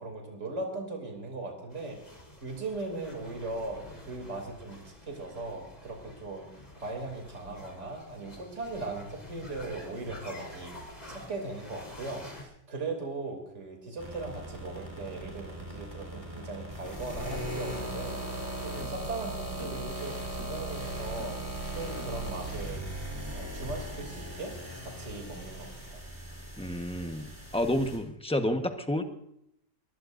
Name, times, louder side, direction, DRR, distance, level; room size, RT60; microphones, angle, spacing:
voice 1, 0.0-6.5 6.8-10.7 11.1-18.2 18.6-21.4 21.7-22.8 23.3-24.6 24.8-26.0, right 2 dB, 40° right, 2 dB, 3.4 m, -39 dB
sound 1, 1.7-12.4, left 1 dB, 20° left, 4.0 m, -48 dB
sound 2, 14.0-28.0, right 1 dB, 10° right, 4.6 m, -38 dB
voice 2, 26.6-29.0, left 1 dB, 5° left, 5 dB, 1.0 m, -30 dB
22.5 x 20.5 x 2.6 m, 0.78 s
omnidirectional pair, 1.8 m